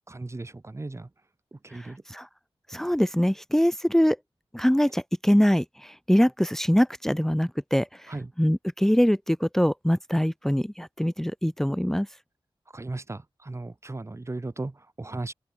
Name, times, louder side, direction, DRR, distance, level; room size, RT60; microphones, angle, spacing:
voice 1, 0.1-1.1 1.5-2.0 8.1-8.3 12.7-15.3, right 2 dB, 30° right, 2.0 m, -36 dB
voice 2, 1.7-2.3 2.7-4.2 4.5-8.1 8.4-12.1, equal, 5° left, 1.2 m, -23 dB
open air
wide cardioid pair, 80°, 10 cm